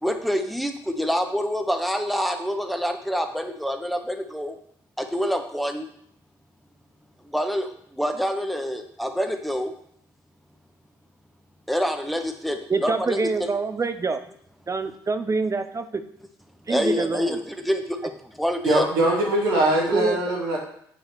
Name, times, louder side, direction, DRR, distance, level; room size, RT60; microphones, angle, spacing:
voice 1, 0.0-4.6 5.0-5.9 7.2-9.7 11.7-13.2 16.7-18.9, equal, ahead, 5 dB, 1.2 m, -26 dB
voice 2, 12.7-14.2 14.7-16.0 16.7-17.4 19.9-20.2, right 4 dB, 30° right, 10 dB, 0.8 m, -25 dB
voice 3, 18.6-20.6, right 1 dB, 80° right, -2 dB, 2.0 m, -21 dB
8.0 x 4.9 x 4.6 m, 0.68 s
hypercardioid pair, 45°, 11 cm